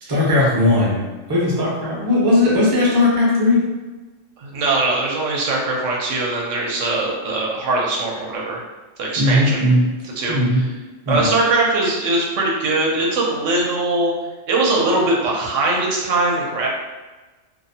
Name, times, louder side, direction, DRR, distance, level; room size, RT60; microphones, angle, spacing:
voice 1, 0.1-3.6 9.2-9.8 10.3-10.6 11.1-11.3, left 1 dB, 30° right, -6 dB, 0.4 m, -17 dB
voice 2, 4.4-8.6 9.0-9.6 10.2-10.7 11.1-14.1 14.5-16.7, right 2 dB, 75° right, -2 dB, 0.9 m, -21 dB
2.6 x 2.0 x 2.6 m, 1.2 s
omnidirectional pair, 1.3 m